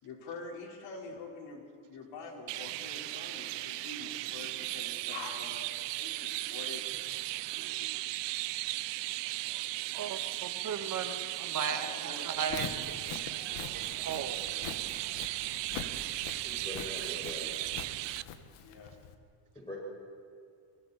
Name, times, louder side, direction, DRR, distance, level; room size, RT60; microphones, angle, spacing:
voice 1, 0.0-7.0 7.9-8.0 9.2-9.6 11.7-12.9 13.5-13.6 18.6-18.9, left 3 dB, 60° left, 0 dB, 5.0 m, -46 dB
Chirp tweet, 2.5-18.2, right 18 dB, 60° right, 0.7 m, -36 dB
voice 2, 9.9-13.0 13.7-14.5, right 7 dB, 40° right, 6 dB, 2.1 m, -37 dB
Walk footsteps, 12.3-19.1, left 7 dB, 85° left, 2.0 m, -44 dB
voice 3, 16.4-17.5 19.5-19.7, left 1 dB, 10° left, -7 dB, 6.5 m, -42 dB
30.0 x 24.5 x 4.5 m, 2.3 s
cardioid pair, 140°, 49 cm